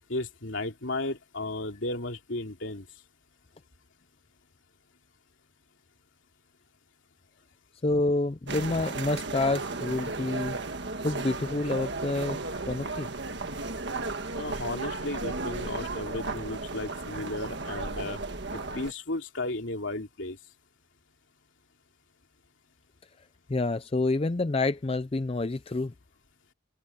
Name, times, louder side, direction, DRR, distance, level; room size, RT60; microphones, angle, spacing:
voice 1, 0.1-2.9 14.3-18.2 18.5-20.4, left 2 dB, 65° left, 2.9 m, -34 dB
voice 2, 7.8-10.6 11.0-12.4 12.7-13.1 23.5-25.9, left 2 dB, 30° left, 0.4 m, -28 dB
sound 1, 8.5-18.9, right 3 dB, 55° right, 1.6 m, -34 dB
head